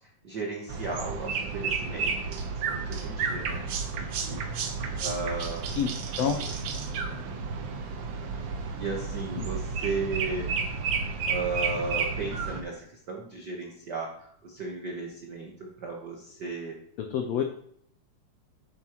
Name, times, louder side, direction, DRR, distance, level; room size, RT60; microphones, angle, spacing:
voice 1, 0.0-3.6 3.9-4.7 5.0-5.8 6.4-6.5 6.9-7.3 8.8-10.5 11.3-16.8, right 3 dB, 90° right, -1 dB, 0.9 m, -35 dB
sound 1, 0.7-12.6, right 5 dB, 65° right, 1.5 m, -32 dB
voice 2, 17.0-17.4, left 8 dB, 85° left, 4 dB, 1.4 m, -27 dB
9.9 x 7.4 x 3.0 m, 0.68 s
omnidirectional pair, 3.8 m